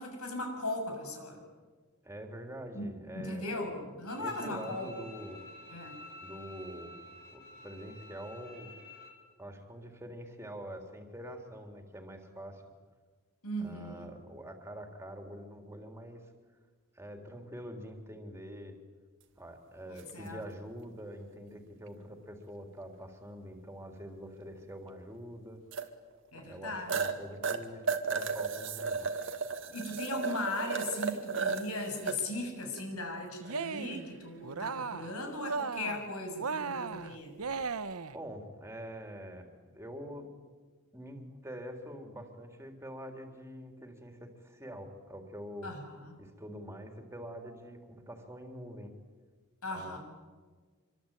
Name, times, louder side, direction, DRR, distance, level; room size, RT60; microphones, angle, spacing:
voice 1, 0.0-1.4 2.7-2.8 3.1-4.9 5.7-6.0 13.4-14.1 19.9-20.4 26.3-27.1 29.7-37.3 45.6-46.2 49.6-50.0, left 2 dB, 80° left, 3 dB, 7.1 m, -38 dB
voice 2, 2.0-3.5 4.2-5.5 6.2-6.9 7.3-8.7 9.4-12.6 13.6-16.3 16.9-18.8 19.4-25.6 26.3-29.1 38.1-39.5 39.7-40.3 40.9-45.7 46.2-48.9 49.7-50.0, equal, 10° right, 4 dB, 3.8 m, -45 dB
Bowed string instrument, 4.1-9.1, left 2 dB, 45° left, 5.2 m, -50 dB
sound 1, 20.0-20.1 22.6-22.7 25.7-25.9 26.3-26.4 26.9-27.1 27.4-32.1 32.6-32.8 33.4-33.9 37.4-37.6, right 5 dB, 55° right, 2.2 m, -34 dB
Cheering, 33.4-34.1 34.4-35.1 35.4-36.1 36.4-38.2, right 4 dB, 80° right, 1.0 m, -36 dB
26.5 x 24.0 x 9.2 m, 1.4 s
head